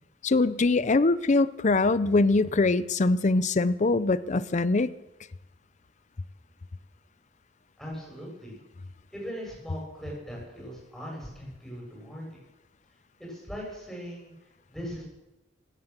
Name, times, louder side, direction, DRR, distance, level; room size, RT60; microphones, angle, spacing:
voice 1, 0.2-4.9, left 3 dB, 40° left, 16 dB, 0.5 m, -23 dB
voice 2, 7.8-8.6 9.1-12.4 13.2-14.3 14.7-15.0, equal, ahead, -3 dB, 7.7 m, -39 dB
17.0 x 11.5 x 7.4 m, 0.99 s
head